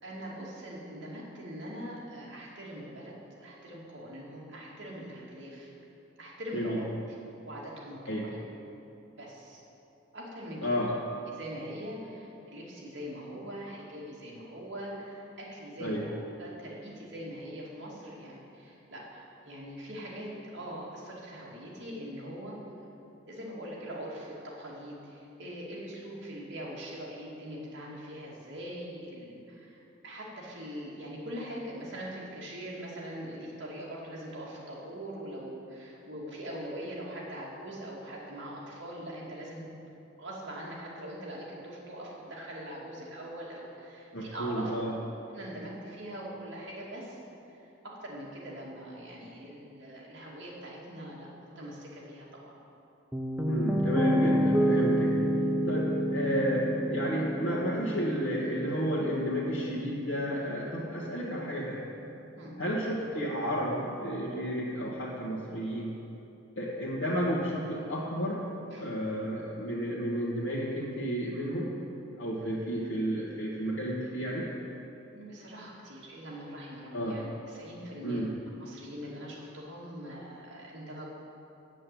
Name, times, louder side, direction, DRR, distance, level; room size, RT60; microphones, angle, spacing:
voice 1, 0.0-5.7 6.2-6.8 7.4-8.4 9.2-9.6 10.1-10.8 11.3-22.6 23.3-39.7 40.2-44.7 45.3-47.2 47.5-52.6 62.4-62.6 68.7-68.9 75.1-78.3 78.6-81.1, equal, 60° right, -5 dB, 2.5 m, -42 dB
voice 2, 10.6-11.0 15.8-16.1 44.1-44.9 53.5-55.1 55.7-61.8 62.6-66.0 66.6-68.4 68.8-71.7 72.1-74.5 76.9-77.2 78.0-78.3, equal, 85° left, -6 dB, 1.4 m, -32 dB
Piano, 53.1-61.2, equal, 5° right, 0.5 m, -29 dB
7.7 x 7.5 x 8.4 m, 2.8 s
head